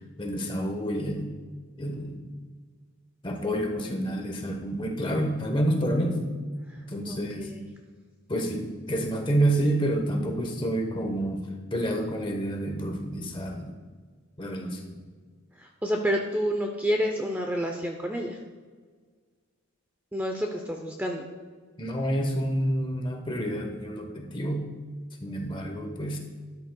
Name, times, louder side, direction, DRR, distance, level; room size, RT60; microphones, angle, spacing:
voice 1, 0.2-1.3 1.8-2.2 3.2-6.2 6.8-7.5 8.3-13.8 14.4-15.0 21.8-24.6 25.2-26.2, right 1 dB, 20° left, 2 dB, 1.0 m, -28 dB
voice 2, 7.1-7.6 15.6-18.4 20.1-21.3, equal, 10° right, 2 dB, 0.5 m, -29 dB
12.5 x 10.5 x 2.3 m, 1.5 s
head